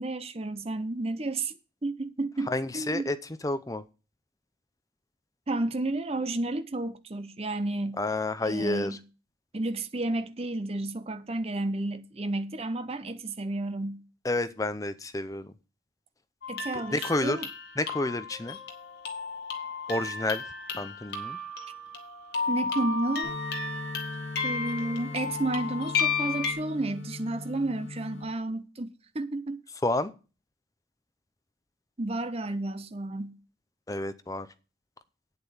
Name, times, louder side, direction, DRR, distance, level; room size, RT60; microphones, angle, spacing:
voice 1, 0.0-1.5 1.8-3.1 5.5-8.0 8.4-9.0 9.5-14.0 16.5-17.5 22.5-23.4 24.4-29.6 32.0-33.4, right 2 dB, 30° right, 0.7 m, -31 dB
voice 2, 2.5-3.8 8.0-9.0 14.2-15.5 16.7-17.4 17.8-18.6 19.9-20.4 20.8-21.4 29.8-30.1 33.9-34.5, left 2 dB, 15° left, 0.6 m, -30 dB
sound 1, 16.4-26.5, left 4 dB, 55° left, 2.1 m, -33 dB
sound 2, 23.2-28.2, left 3 dB, 80° left, 2.6 m, -40 dB
9.1 x 8.0 x 5.6 m
head